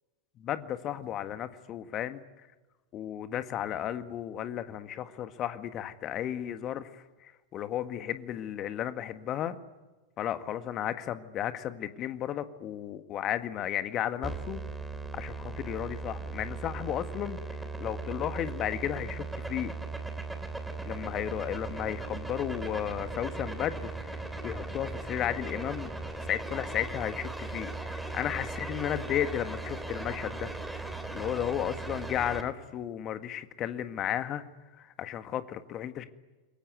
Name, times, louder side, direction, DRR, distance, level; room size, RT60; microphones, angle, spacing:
voice 1, 0.4-2.2 2.9-9.5 10.2-14.6 15.1-19.7 20.8-25.9 26.2-30.5 31.1-34.4 34.8-36.0, left 11 dB, 30° left, 10 dB, 1.8 m, -34 dB
sound 1, 14.2-32.4, right 3 dB, 5° right, 3.2 m, -38 dB
28.0 x 22.5 x 9.5 m, 1.2 s
figure-of-eight pair, 90°, 0 cm